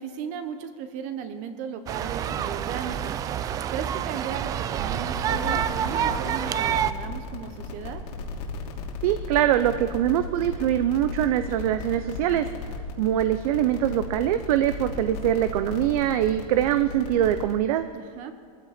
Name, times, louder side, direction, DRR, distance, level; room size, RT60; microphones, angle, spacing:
voice 1, 0.0-3.2 3.7-8.0 17.9-18.3, right 7 dB, 40° right, 9 dB, 1.0 m, -36 dB
sound 1, 1.9-6.9, right 9 dB, 20° right, 0.3 m, -28 dB
sound 2, 5.0-17.5, left 3 dB, 80° left, 3.0 m, -36 dB
voice 2, 9.0-12.4 13.0-17.9, right 11 dB, 65° right, 10 dB, 0.7 m, -23 dB
21.5 x 15.0 x 4.3 m, 2.2 s
supercardioid pair, 160°, 20 cm